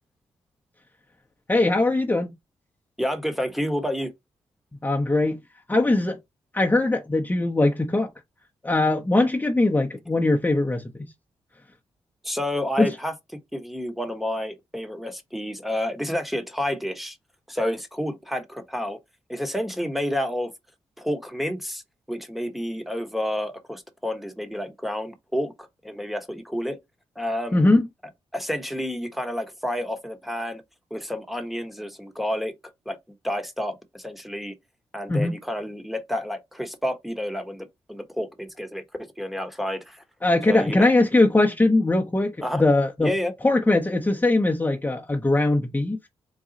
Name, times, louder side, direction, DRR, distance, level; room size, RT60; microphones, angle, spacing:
voice 1, 1.5-2.3 4.8-5.4 5.7-6.2 6.5-8.1 8.6-11.1 12.8-12.9 27.5-27.9 35.1-35.3 40.2-43.1 43.4-46.0, left 2 dB, 15° left, 0.8 m, -21 dB
voice 2, 3.0-4.1 12.2-17.2 17.5-19.0 19.3-20.5 21.0-21.8 22.1-26.8 27.2-27.7 28.3-30.6 30.9-32.5 32.9-33.0 33.2-34.5 34.9-40.0 40.5-40.9 42.4-42.7 43.0-43.3, left 1 dB, ahead, 1.1 m, -30 dB
4.0 x 2.3 x 3.9 m
cardioid pair, 55°, 11 cm